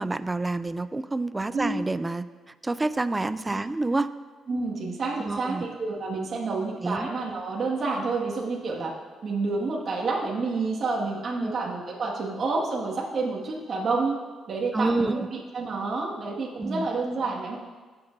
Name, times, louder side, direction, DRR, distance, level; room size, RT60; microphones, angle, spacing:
voice 1, 0.0-2.3 2.6-4.1 5.2-5.6 6.8-7.1 11.4-11.5 14.7-15.3 16.6-16.9, right 2 dB, 20° right, 14 dB, 0.4 m, -28 dB
voice 2, 4.5-8.9 9.2-14.2 14.5-17.6, right 3 dB, 50° right, -3 dB, 1.9 m, -29 dB
15.5 x 8.0 x 2.7 m, 1.4 s
cardioid pair, 90°, 0 cm